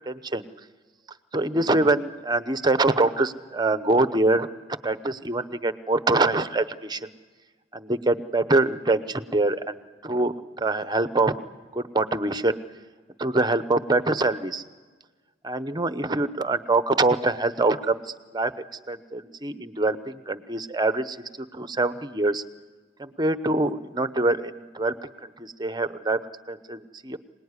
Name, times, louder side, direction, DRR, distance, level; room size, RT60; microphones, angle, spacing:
voice 1, 0.1-0.4 1.3-4.5 4.8-7.1 7.7-11.3 11.7-12.6 13.2-14.6 15.4-18.5 18.9-22.4 23.0-24.9 25.2-26.2 26.5-27.2, right 2 dB, 20° right, 12 dB, 0.9 m, -24 dB
26.0 x 19.5 x 9.7 m, 1.4 s
head